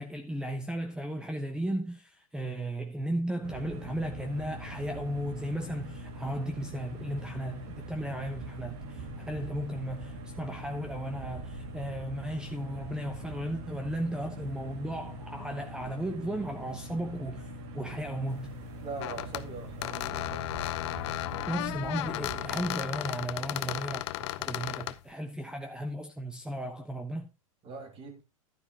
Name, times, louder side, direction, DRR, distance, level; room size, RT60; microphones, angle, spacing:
voice 1, 0.0-17.5 17.7-18.6 21.5-27.3, right 1 dB, 5° right, 1.0 m, -35 dB
sound 1, 3.4-22.7, equal, 50° right, 2.1 m, -42 dB
voice 2, 18.8-20.6 27.6-28.2, right 4 dB, 30° right, 2.5 m, -42 dB
sound 2, 18.9-19.4 19.8-25.0, left 16 dB, 50° left, 0.7 m, -35 dB
11.5 x 9.5 x 2.9 m
hypercardioid pair, 105°, 18 cm